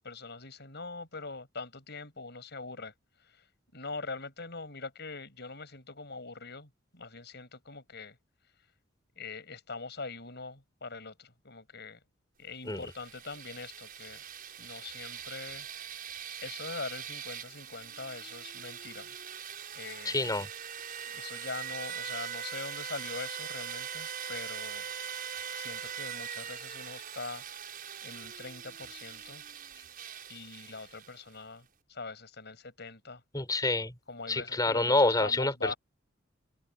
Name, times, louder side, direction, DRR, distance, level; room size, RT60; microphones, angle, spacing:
voice 1, 0.0-2.9 3.3-3.4 3.7-8.2 9.2-12.0 12.4-14.2 14.6-15.7 16.4-19.1 19.7-20.2 21.1-24.8 25.5-27.4 28.0-29.4 30.3-33.2 34.1-35.8, left 3 dB, 55° left, 6.4 m, -43 dB
sound 1, 12.7-31.4, right 8 dB, 45° right, 7.1 m, -42 dB
voice 2, 20.0-20.5 33.3-33.9 34.3-35.7, left 2 dB, 20° left, 4.4 m, -27 dB
open air
head